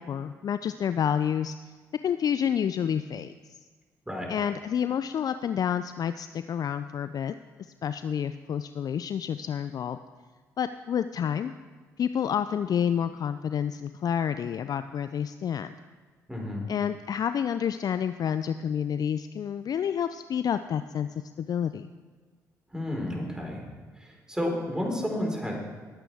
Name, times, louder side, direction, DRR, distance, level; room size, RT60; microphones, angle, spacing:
voice 1, 0.0-1.5 2.0-3.6 4.3-7.3 7.8-10.0 10.6-11.5 12.0-15.7 16.7-21.9, left 8 dB, 50° left, 11 dB, 0.4 m, -29 dB
voice 2, 16.3-16.7 22.7-23.6 24.0-25.5, left 1 dB, 10° right, -1 dB, 4.5 m, -31 dB
20.0 x 8.9 x 3.5 m, 1.5 s
hypercardioid pair, 50°, 9 cm